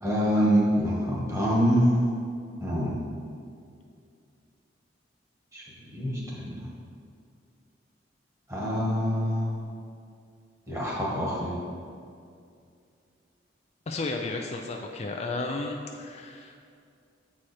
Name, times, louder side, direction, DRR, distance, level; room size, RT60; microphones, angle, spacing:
voice 1, 0.0-2.0 2.6-3.0 5.5-5.6 5.9-6.6 8.5-9.5 10.7-11.6, equal, 15° right, -5 dB, 1.6 m, -25 dB
voice 2, 13.9-16.7, left 3 dB, 40° left, 2 dB, 0.4 m, -33 dB
7.5 x 4.9 x 4.3 m, 2.4 s
head